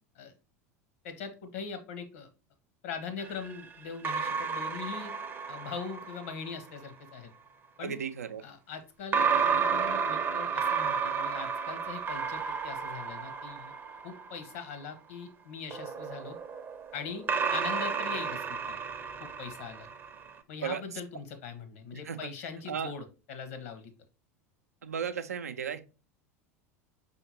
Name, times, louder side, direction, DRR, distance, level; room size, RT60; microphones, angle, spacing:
voice 1, 1.0-2.3 2.8-5.1 5.5-7.3 7.8-8.0 8.4-13.7 14.0-16.4 16.9-18.8 19.2-19.9 20.5-23.9, left 6 dB, 60° left, 1.0 m, -41 dB
sound 1, 3.2-6.6 9.1-14.6 15.7-20.3, right 6 dB, 25° right, 0.6 m, -32 dB
voice 2, 7.8-8.4 20.6-20.8 21.9-22.2 22.7-22.9 24.8-25.8, right 7 dB, 75° right, 0.5 m, -35 dB
5.6 x 2.8 x 2.8 m
figure-of-eight pair, 80°, 8 cm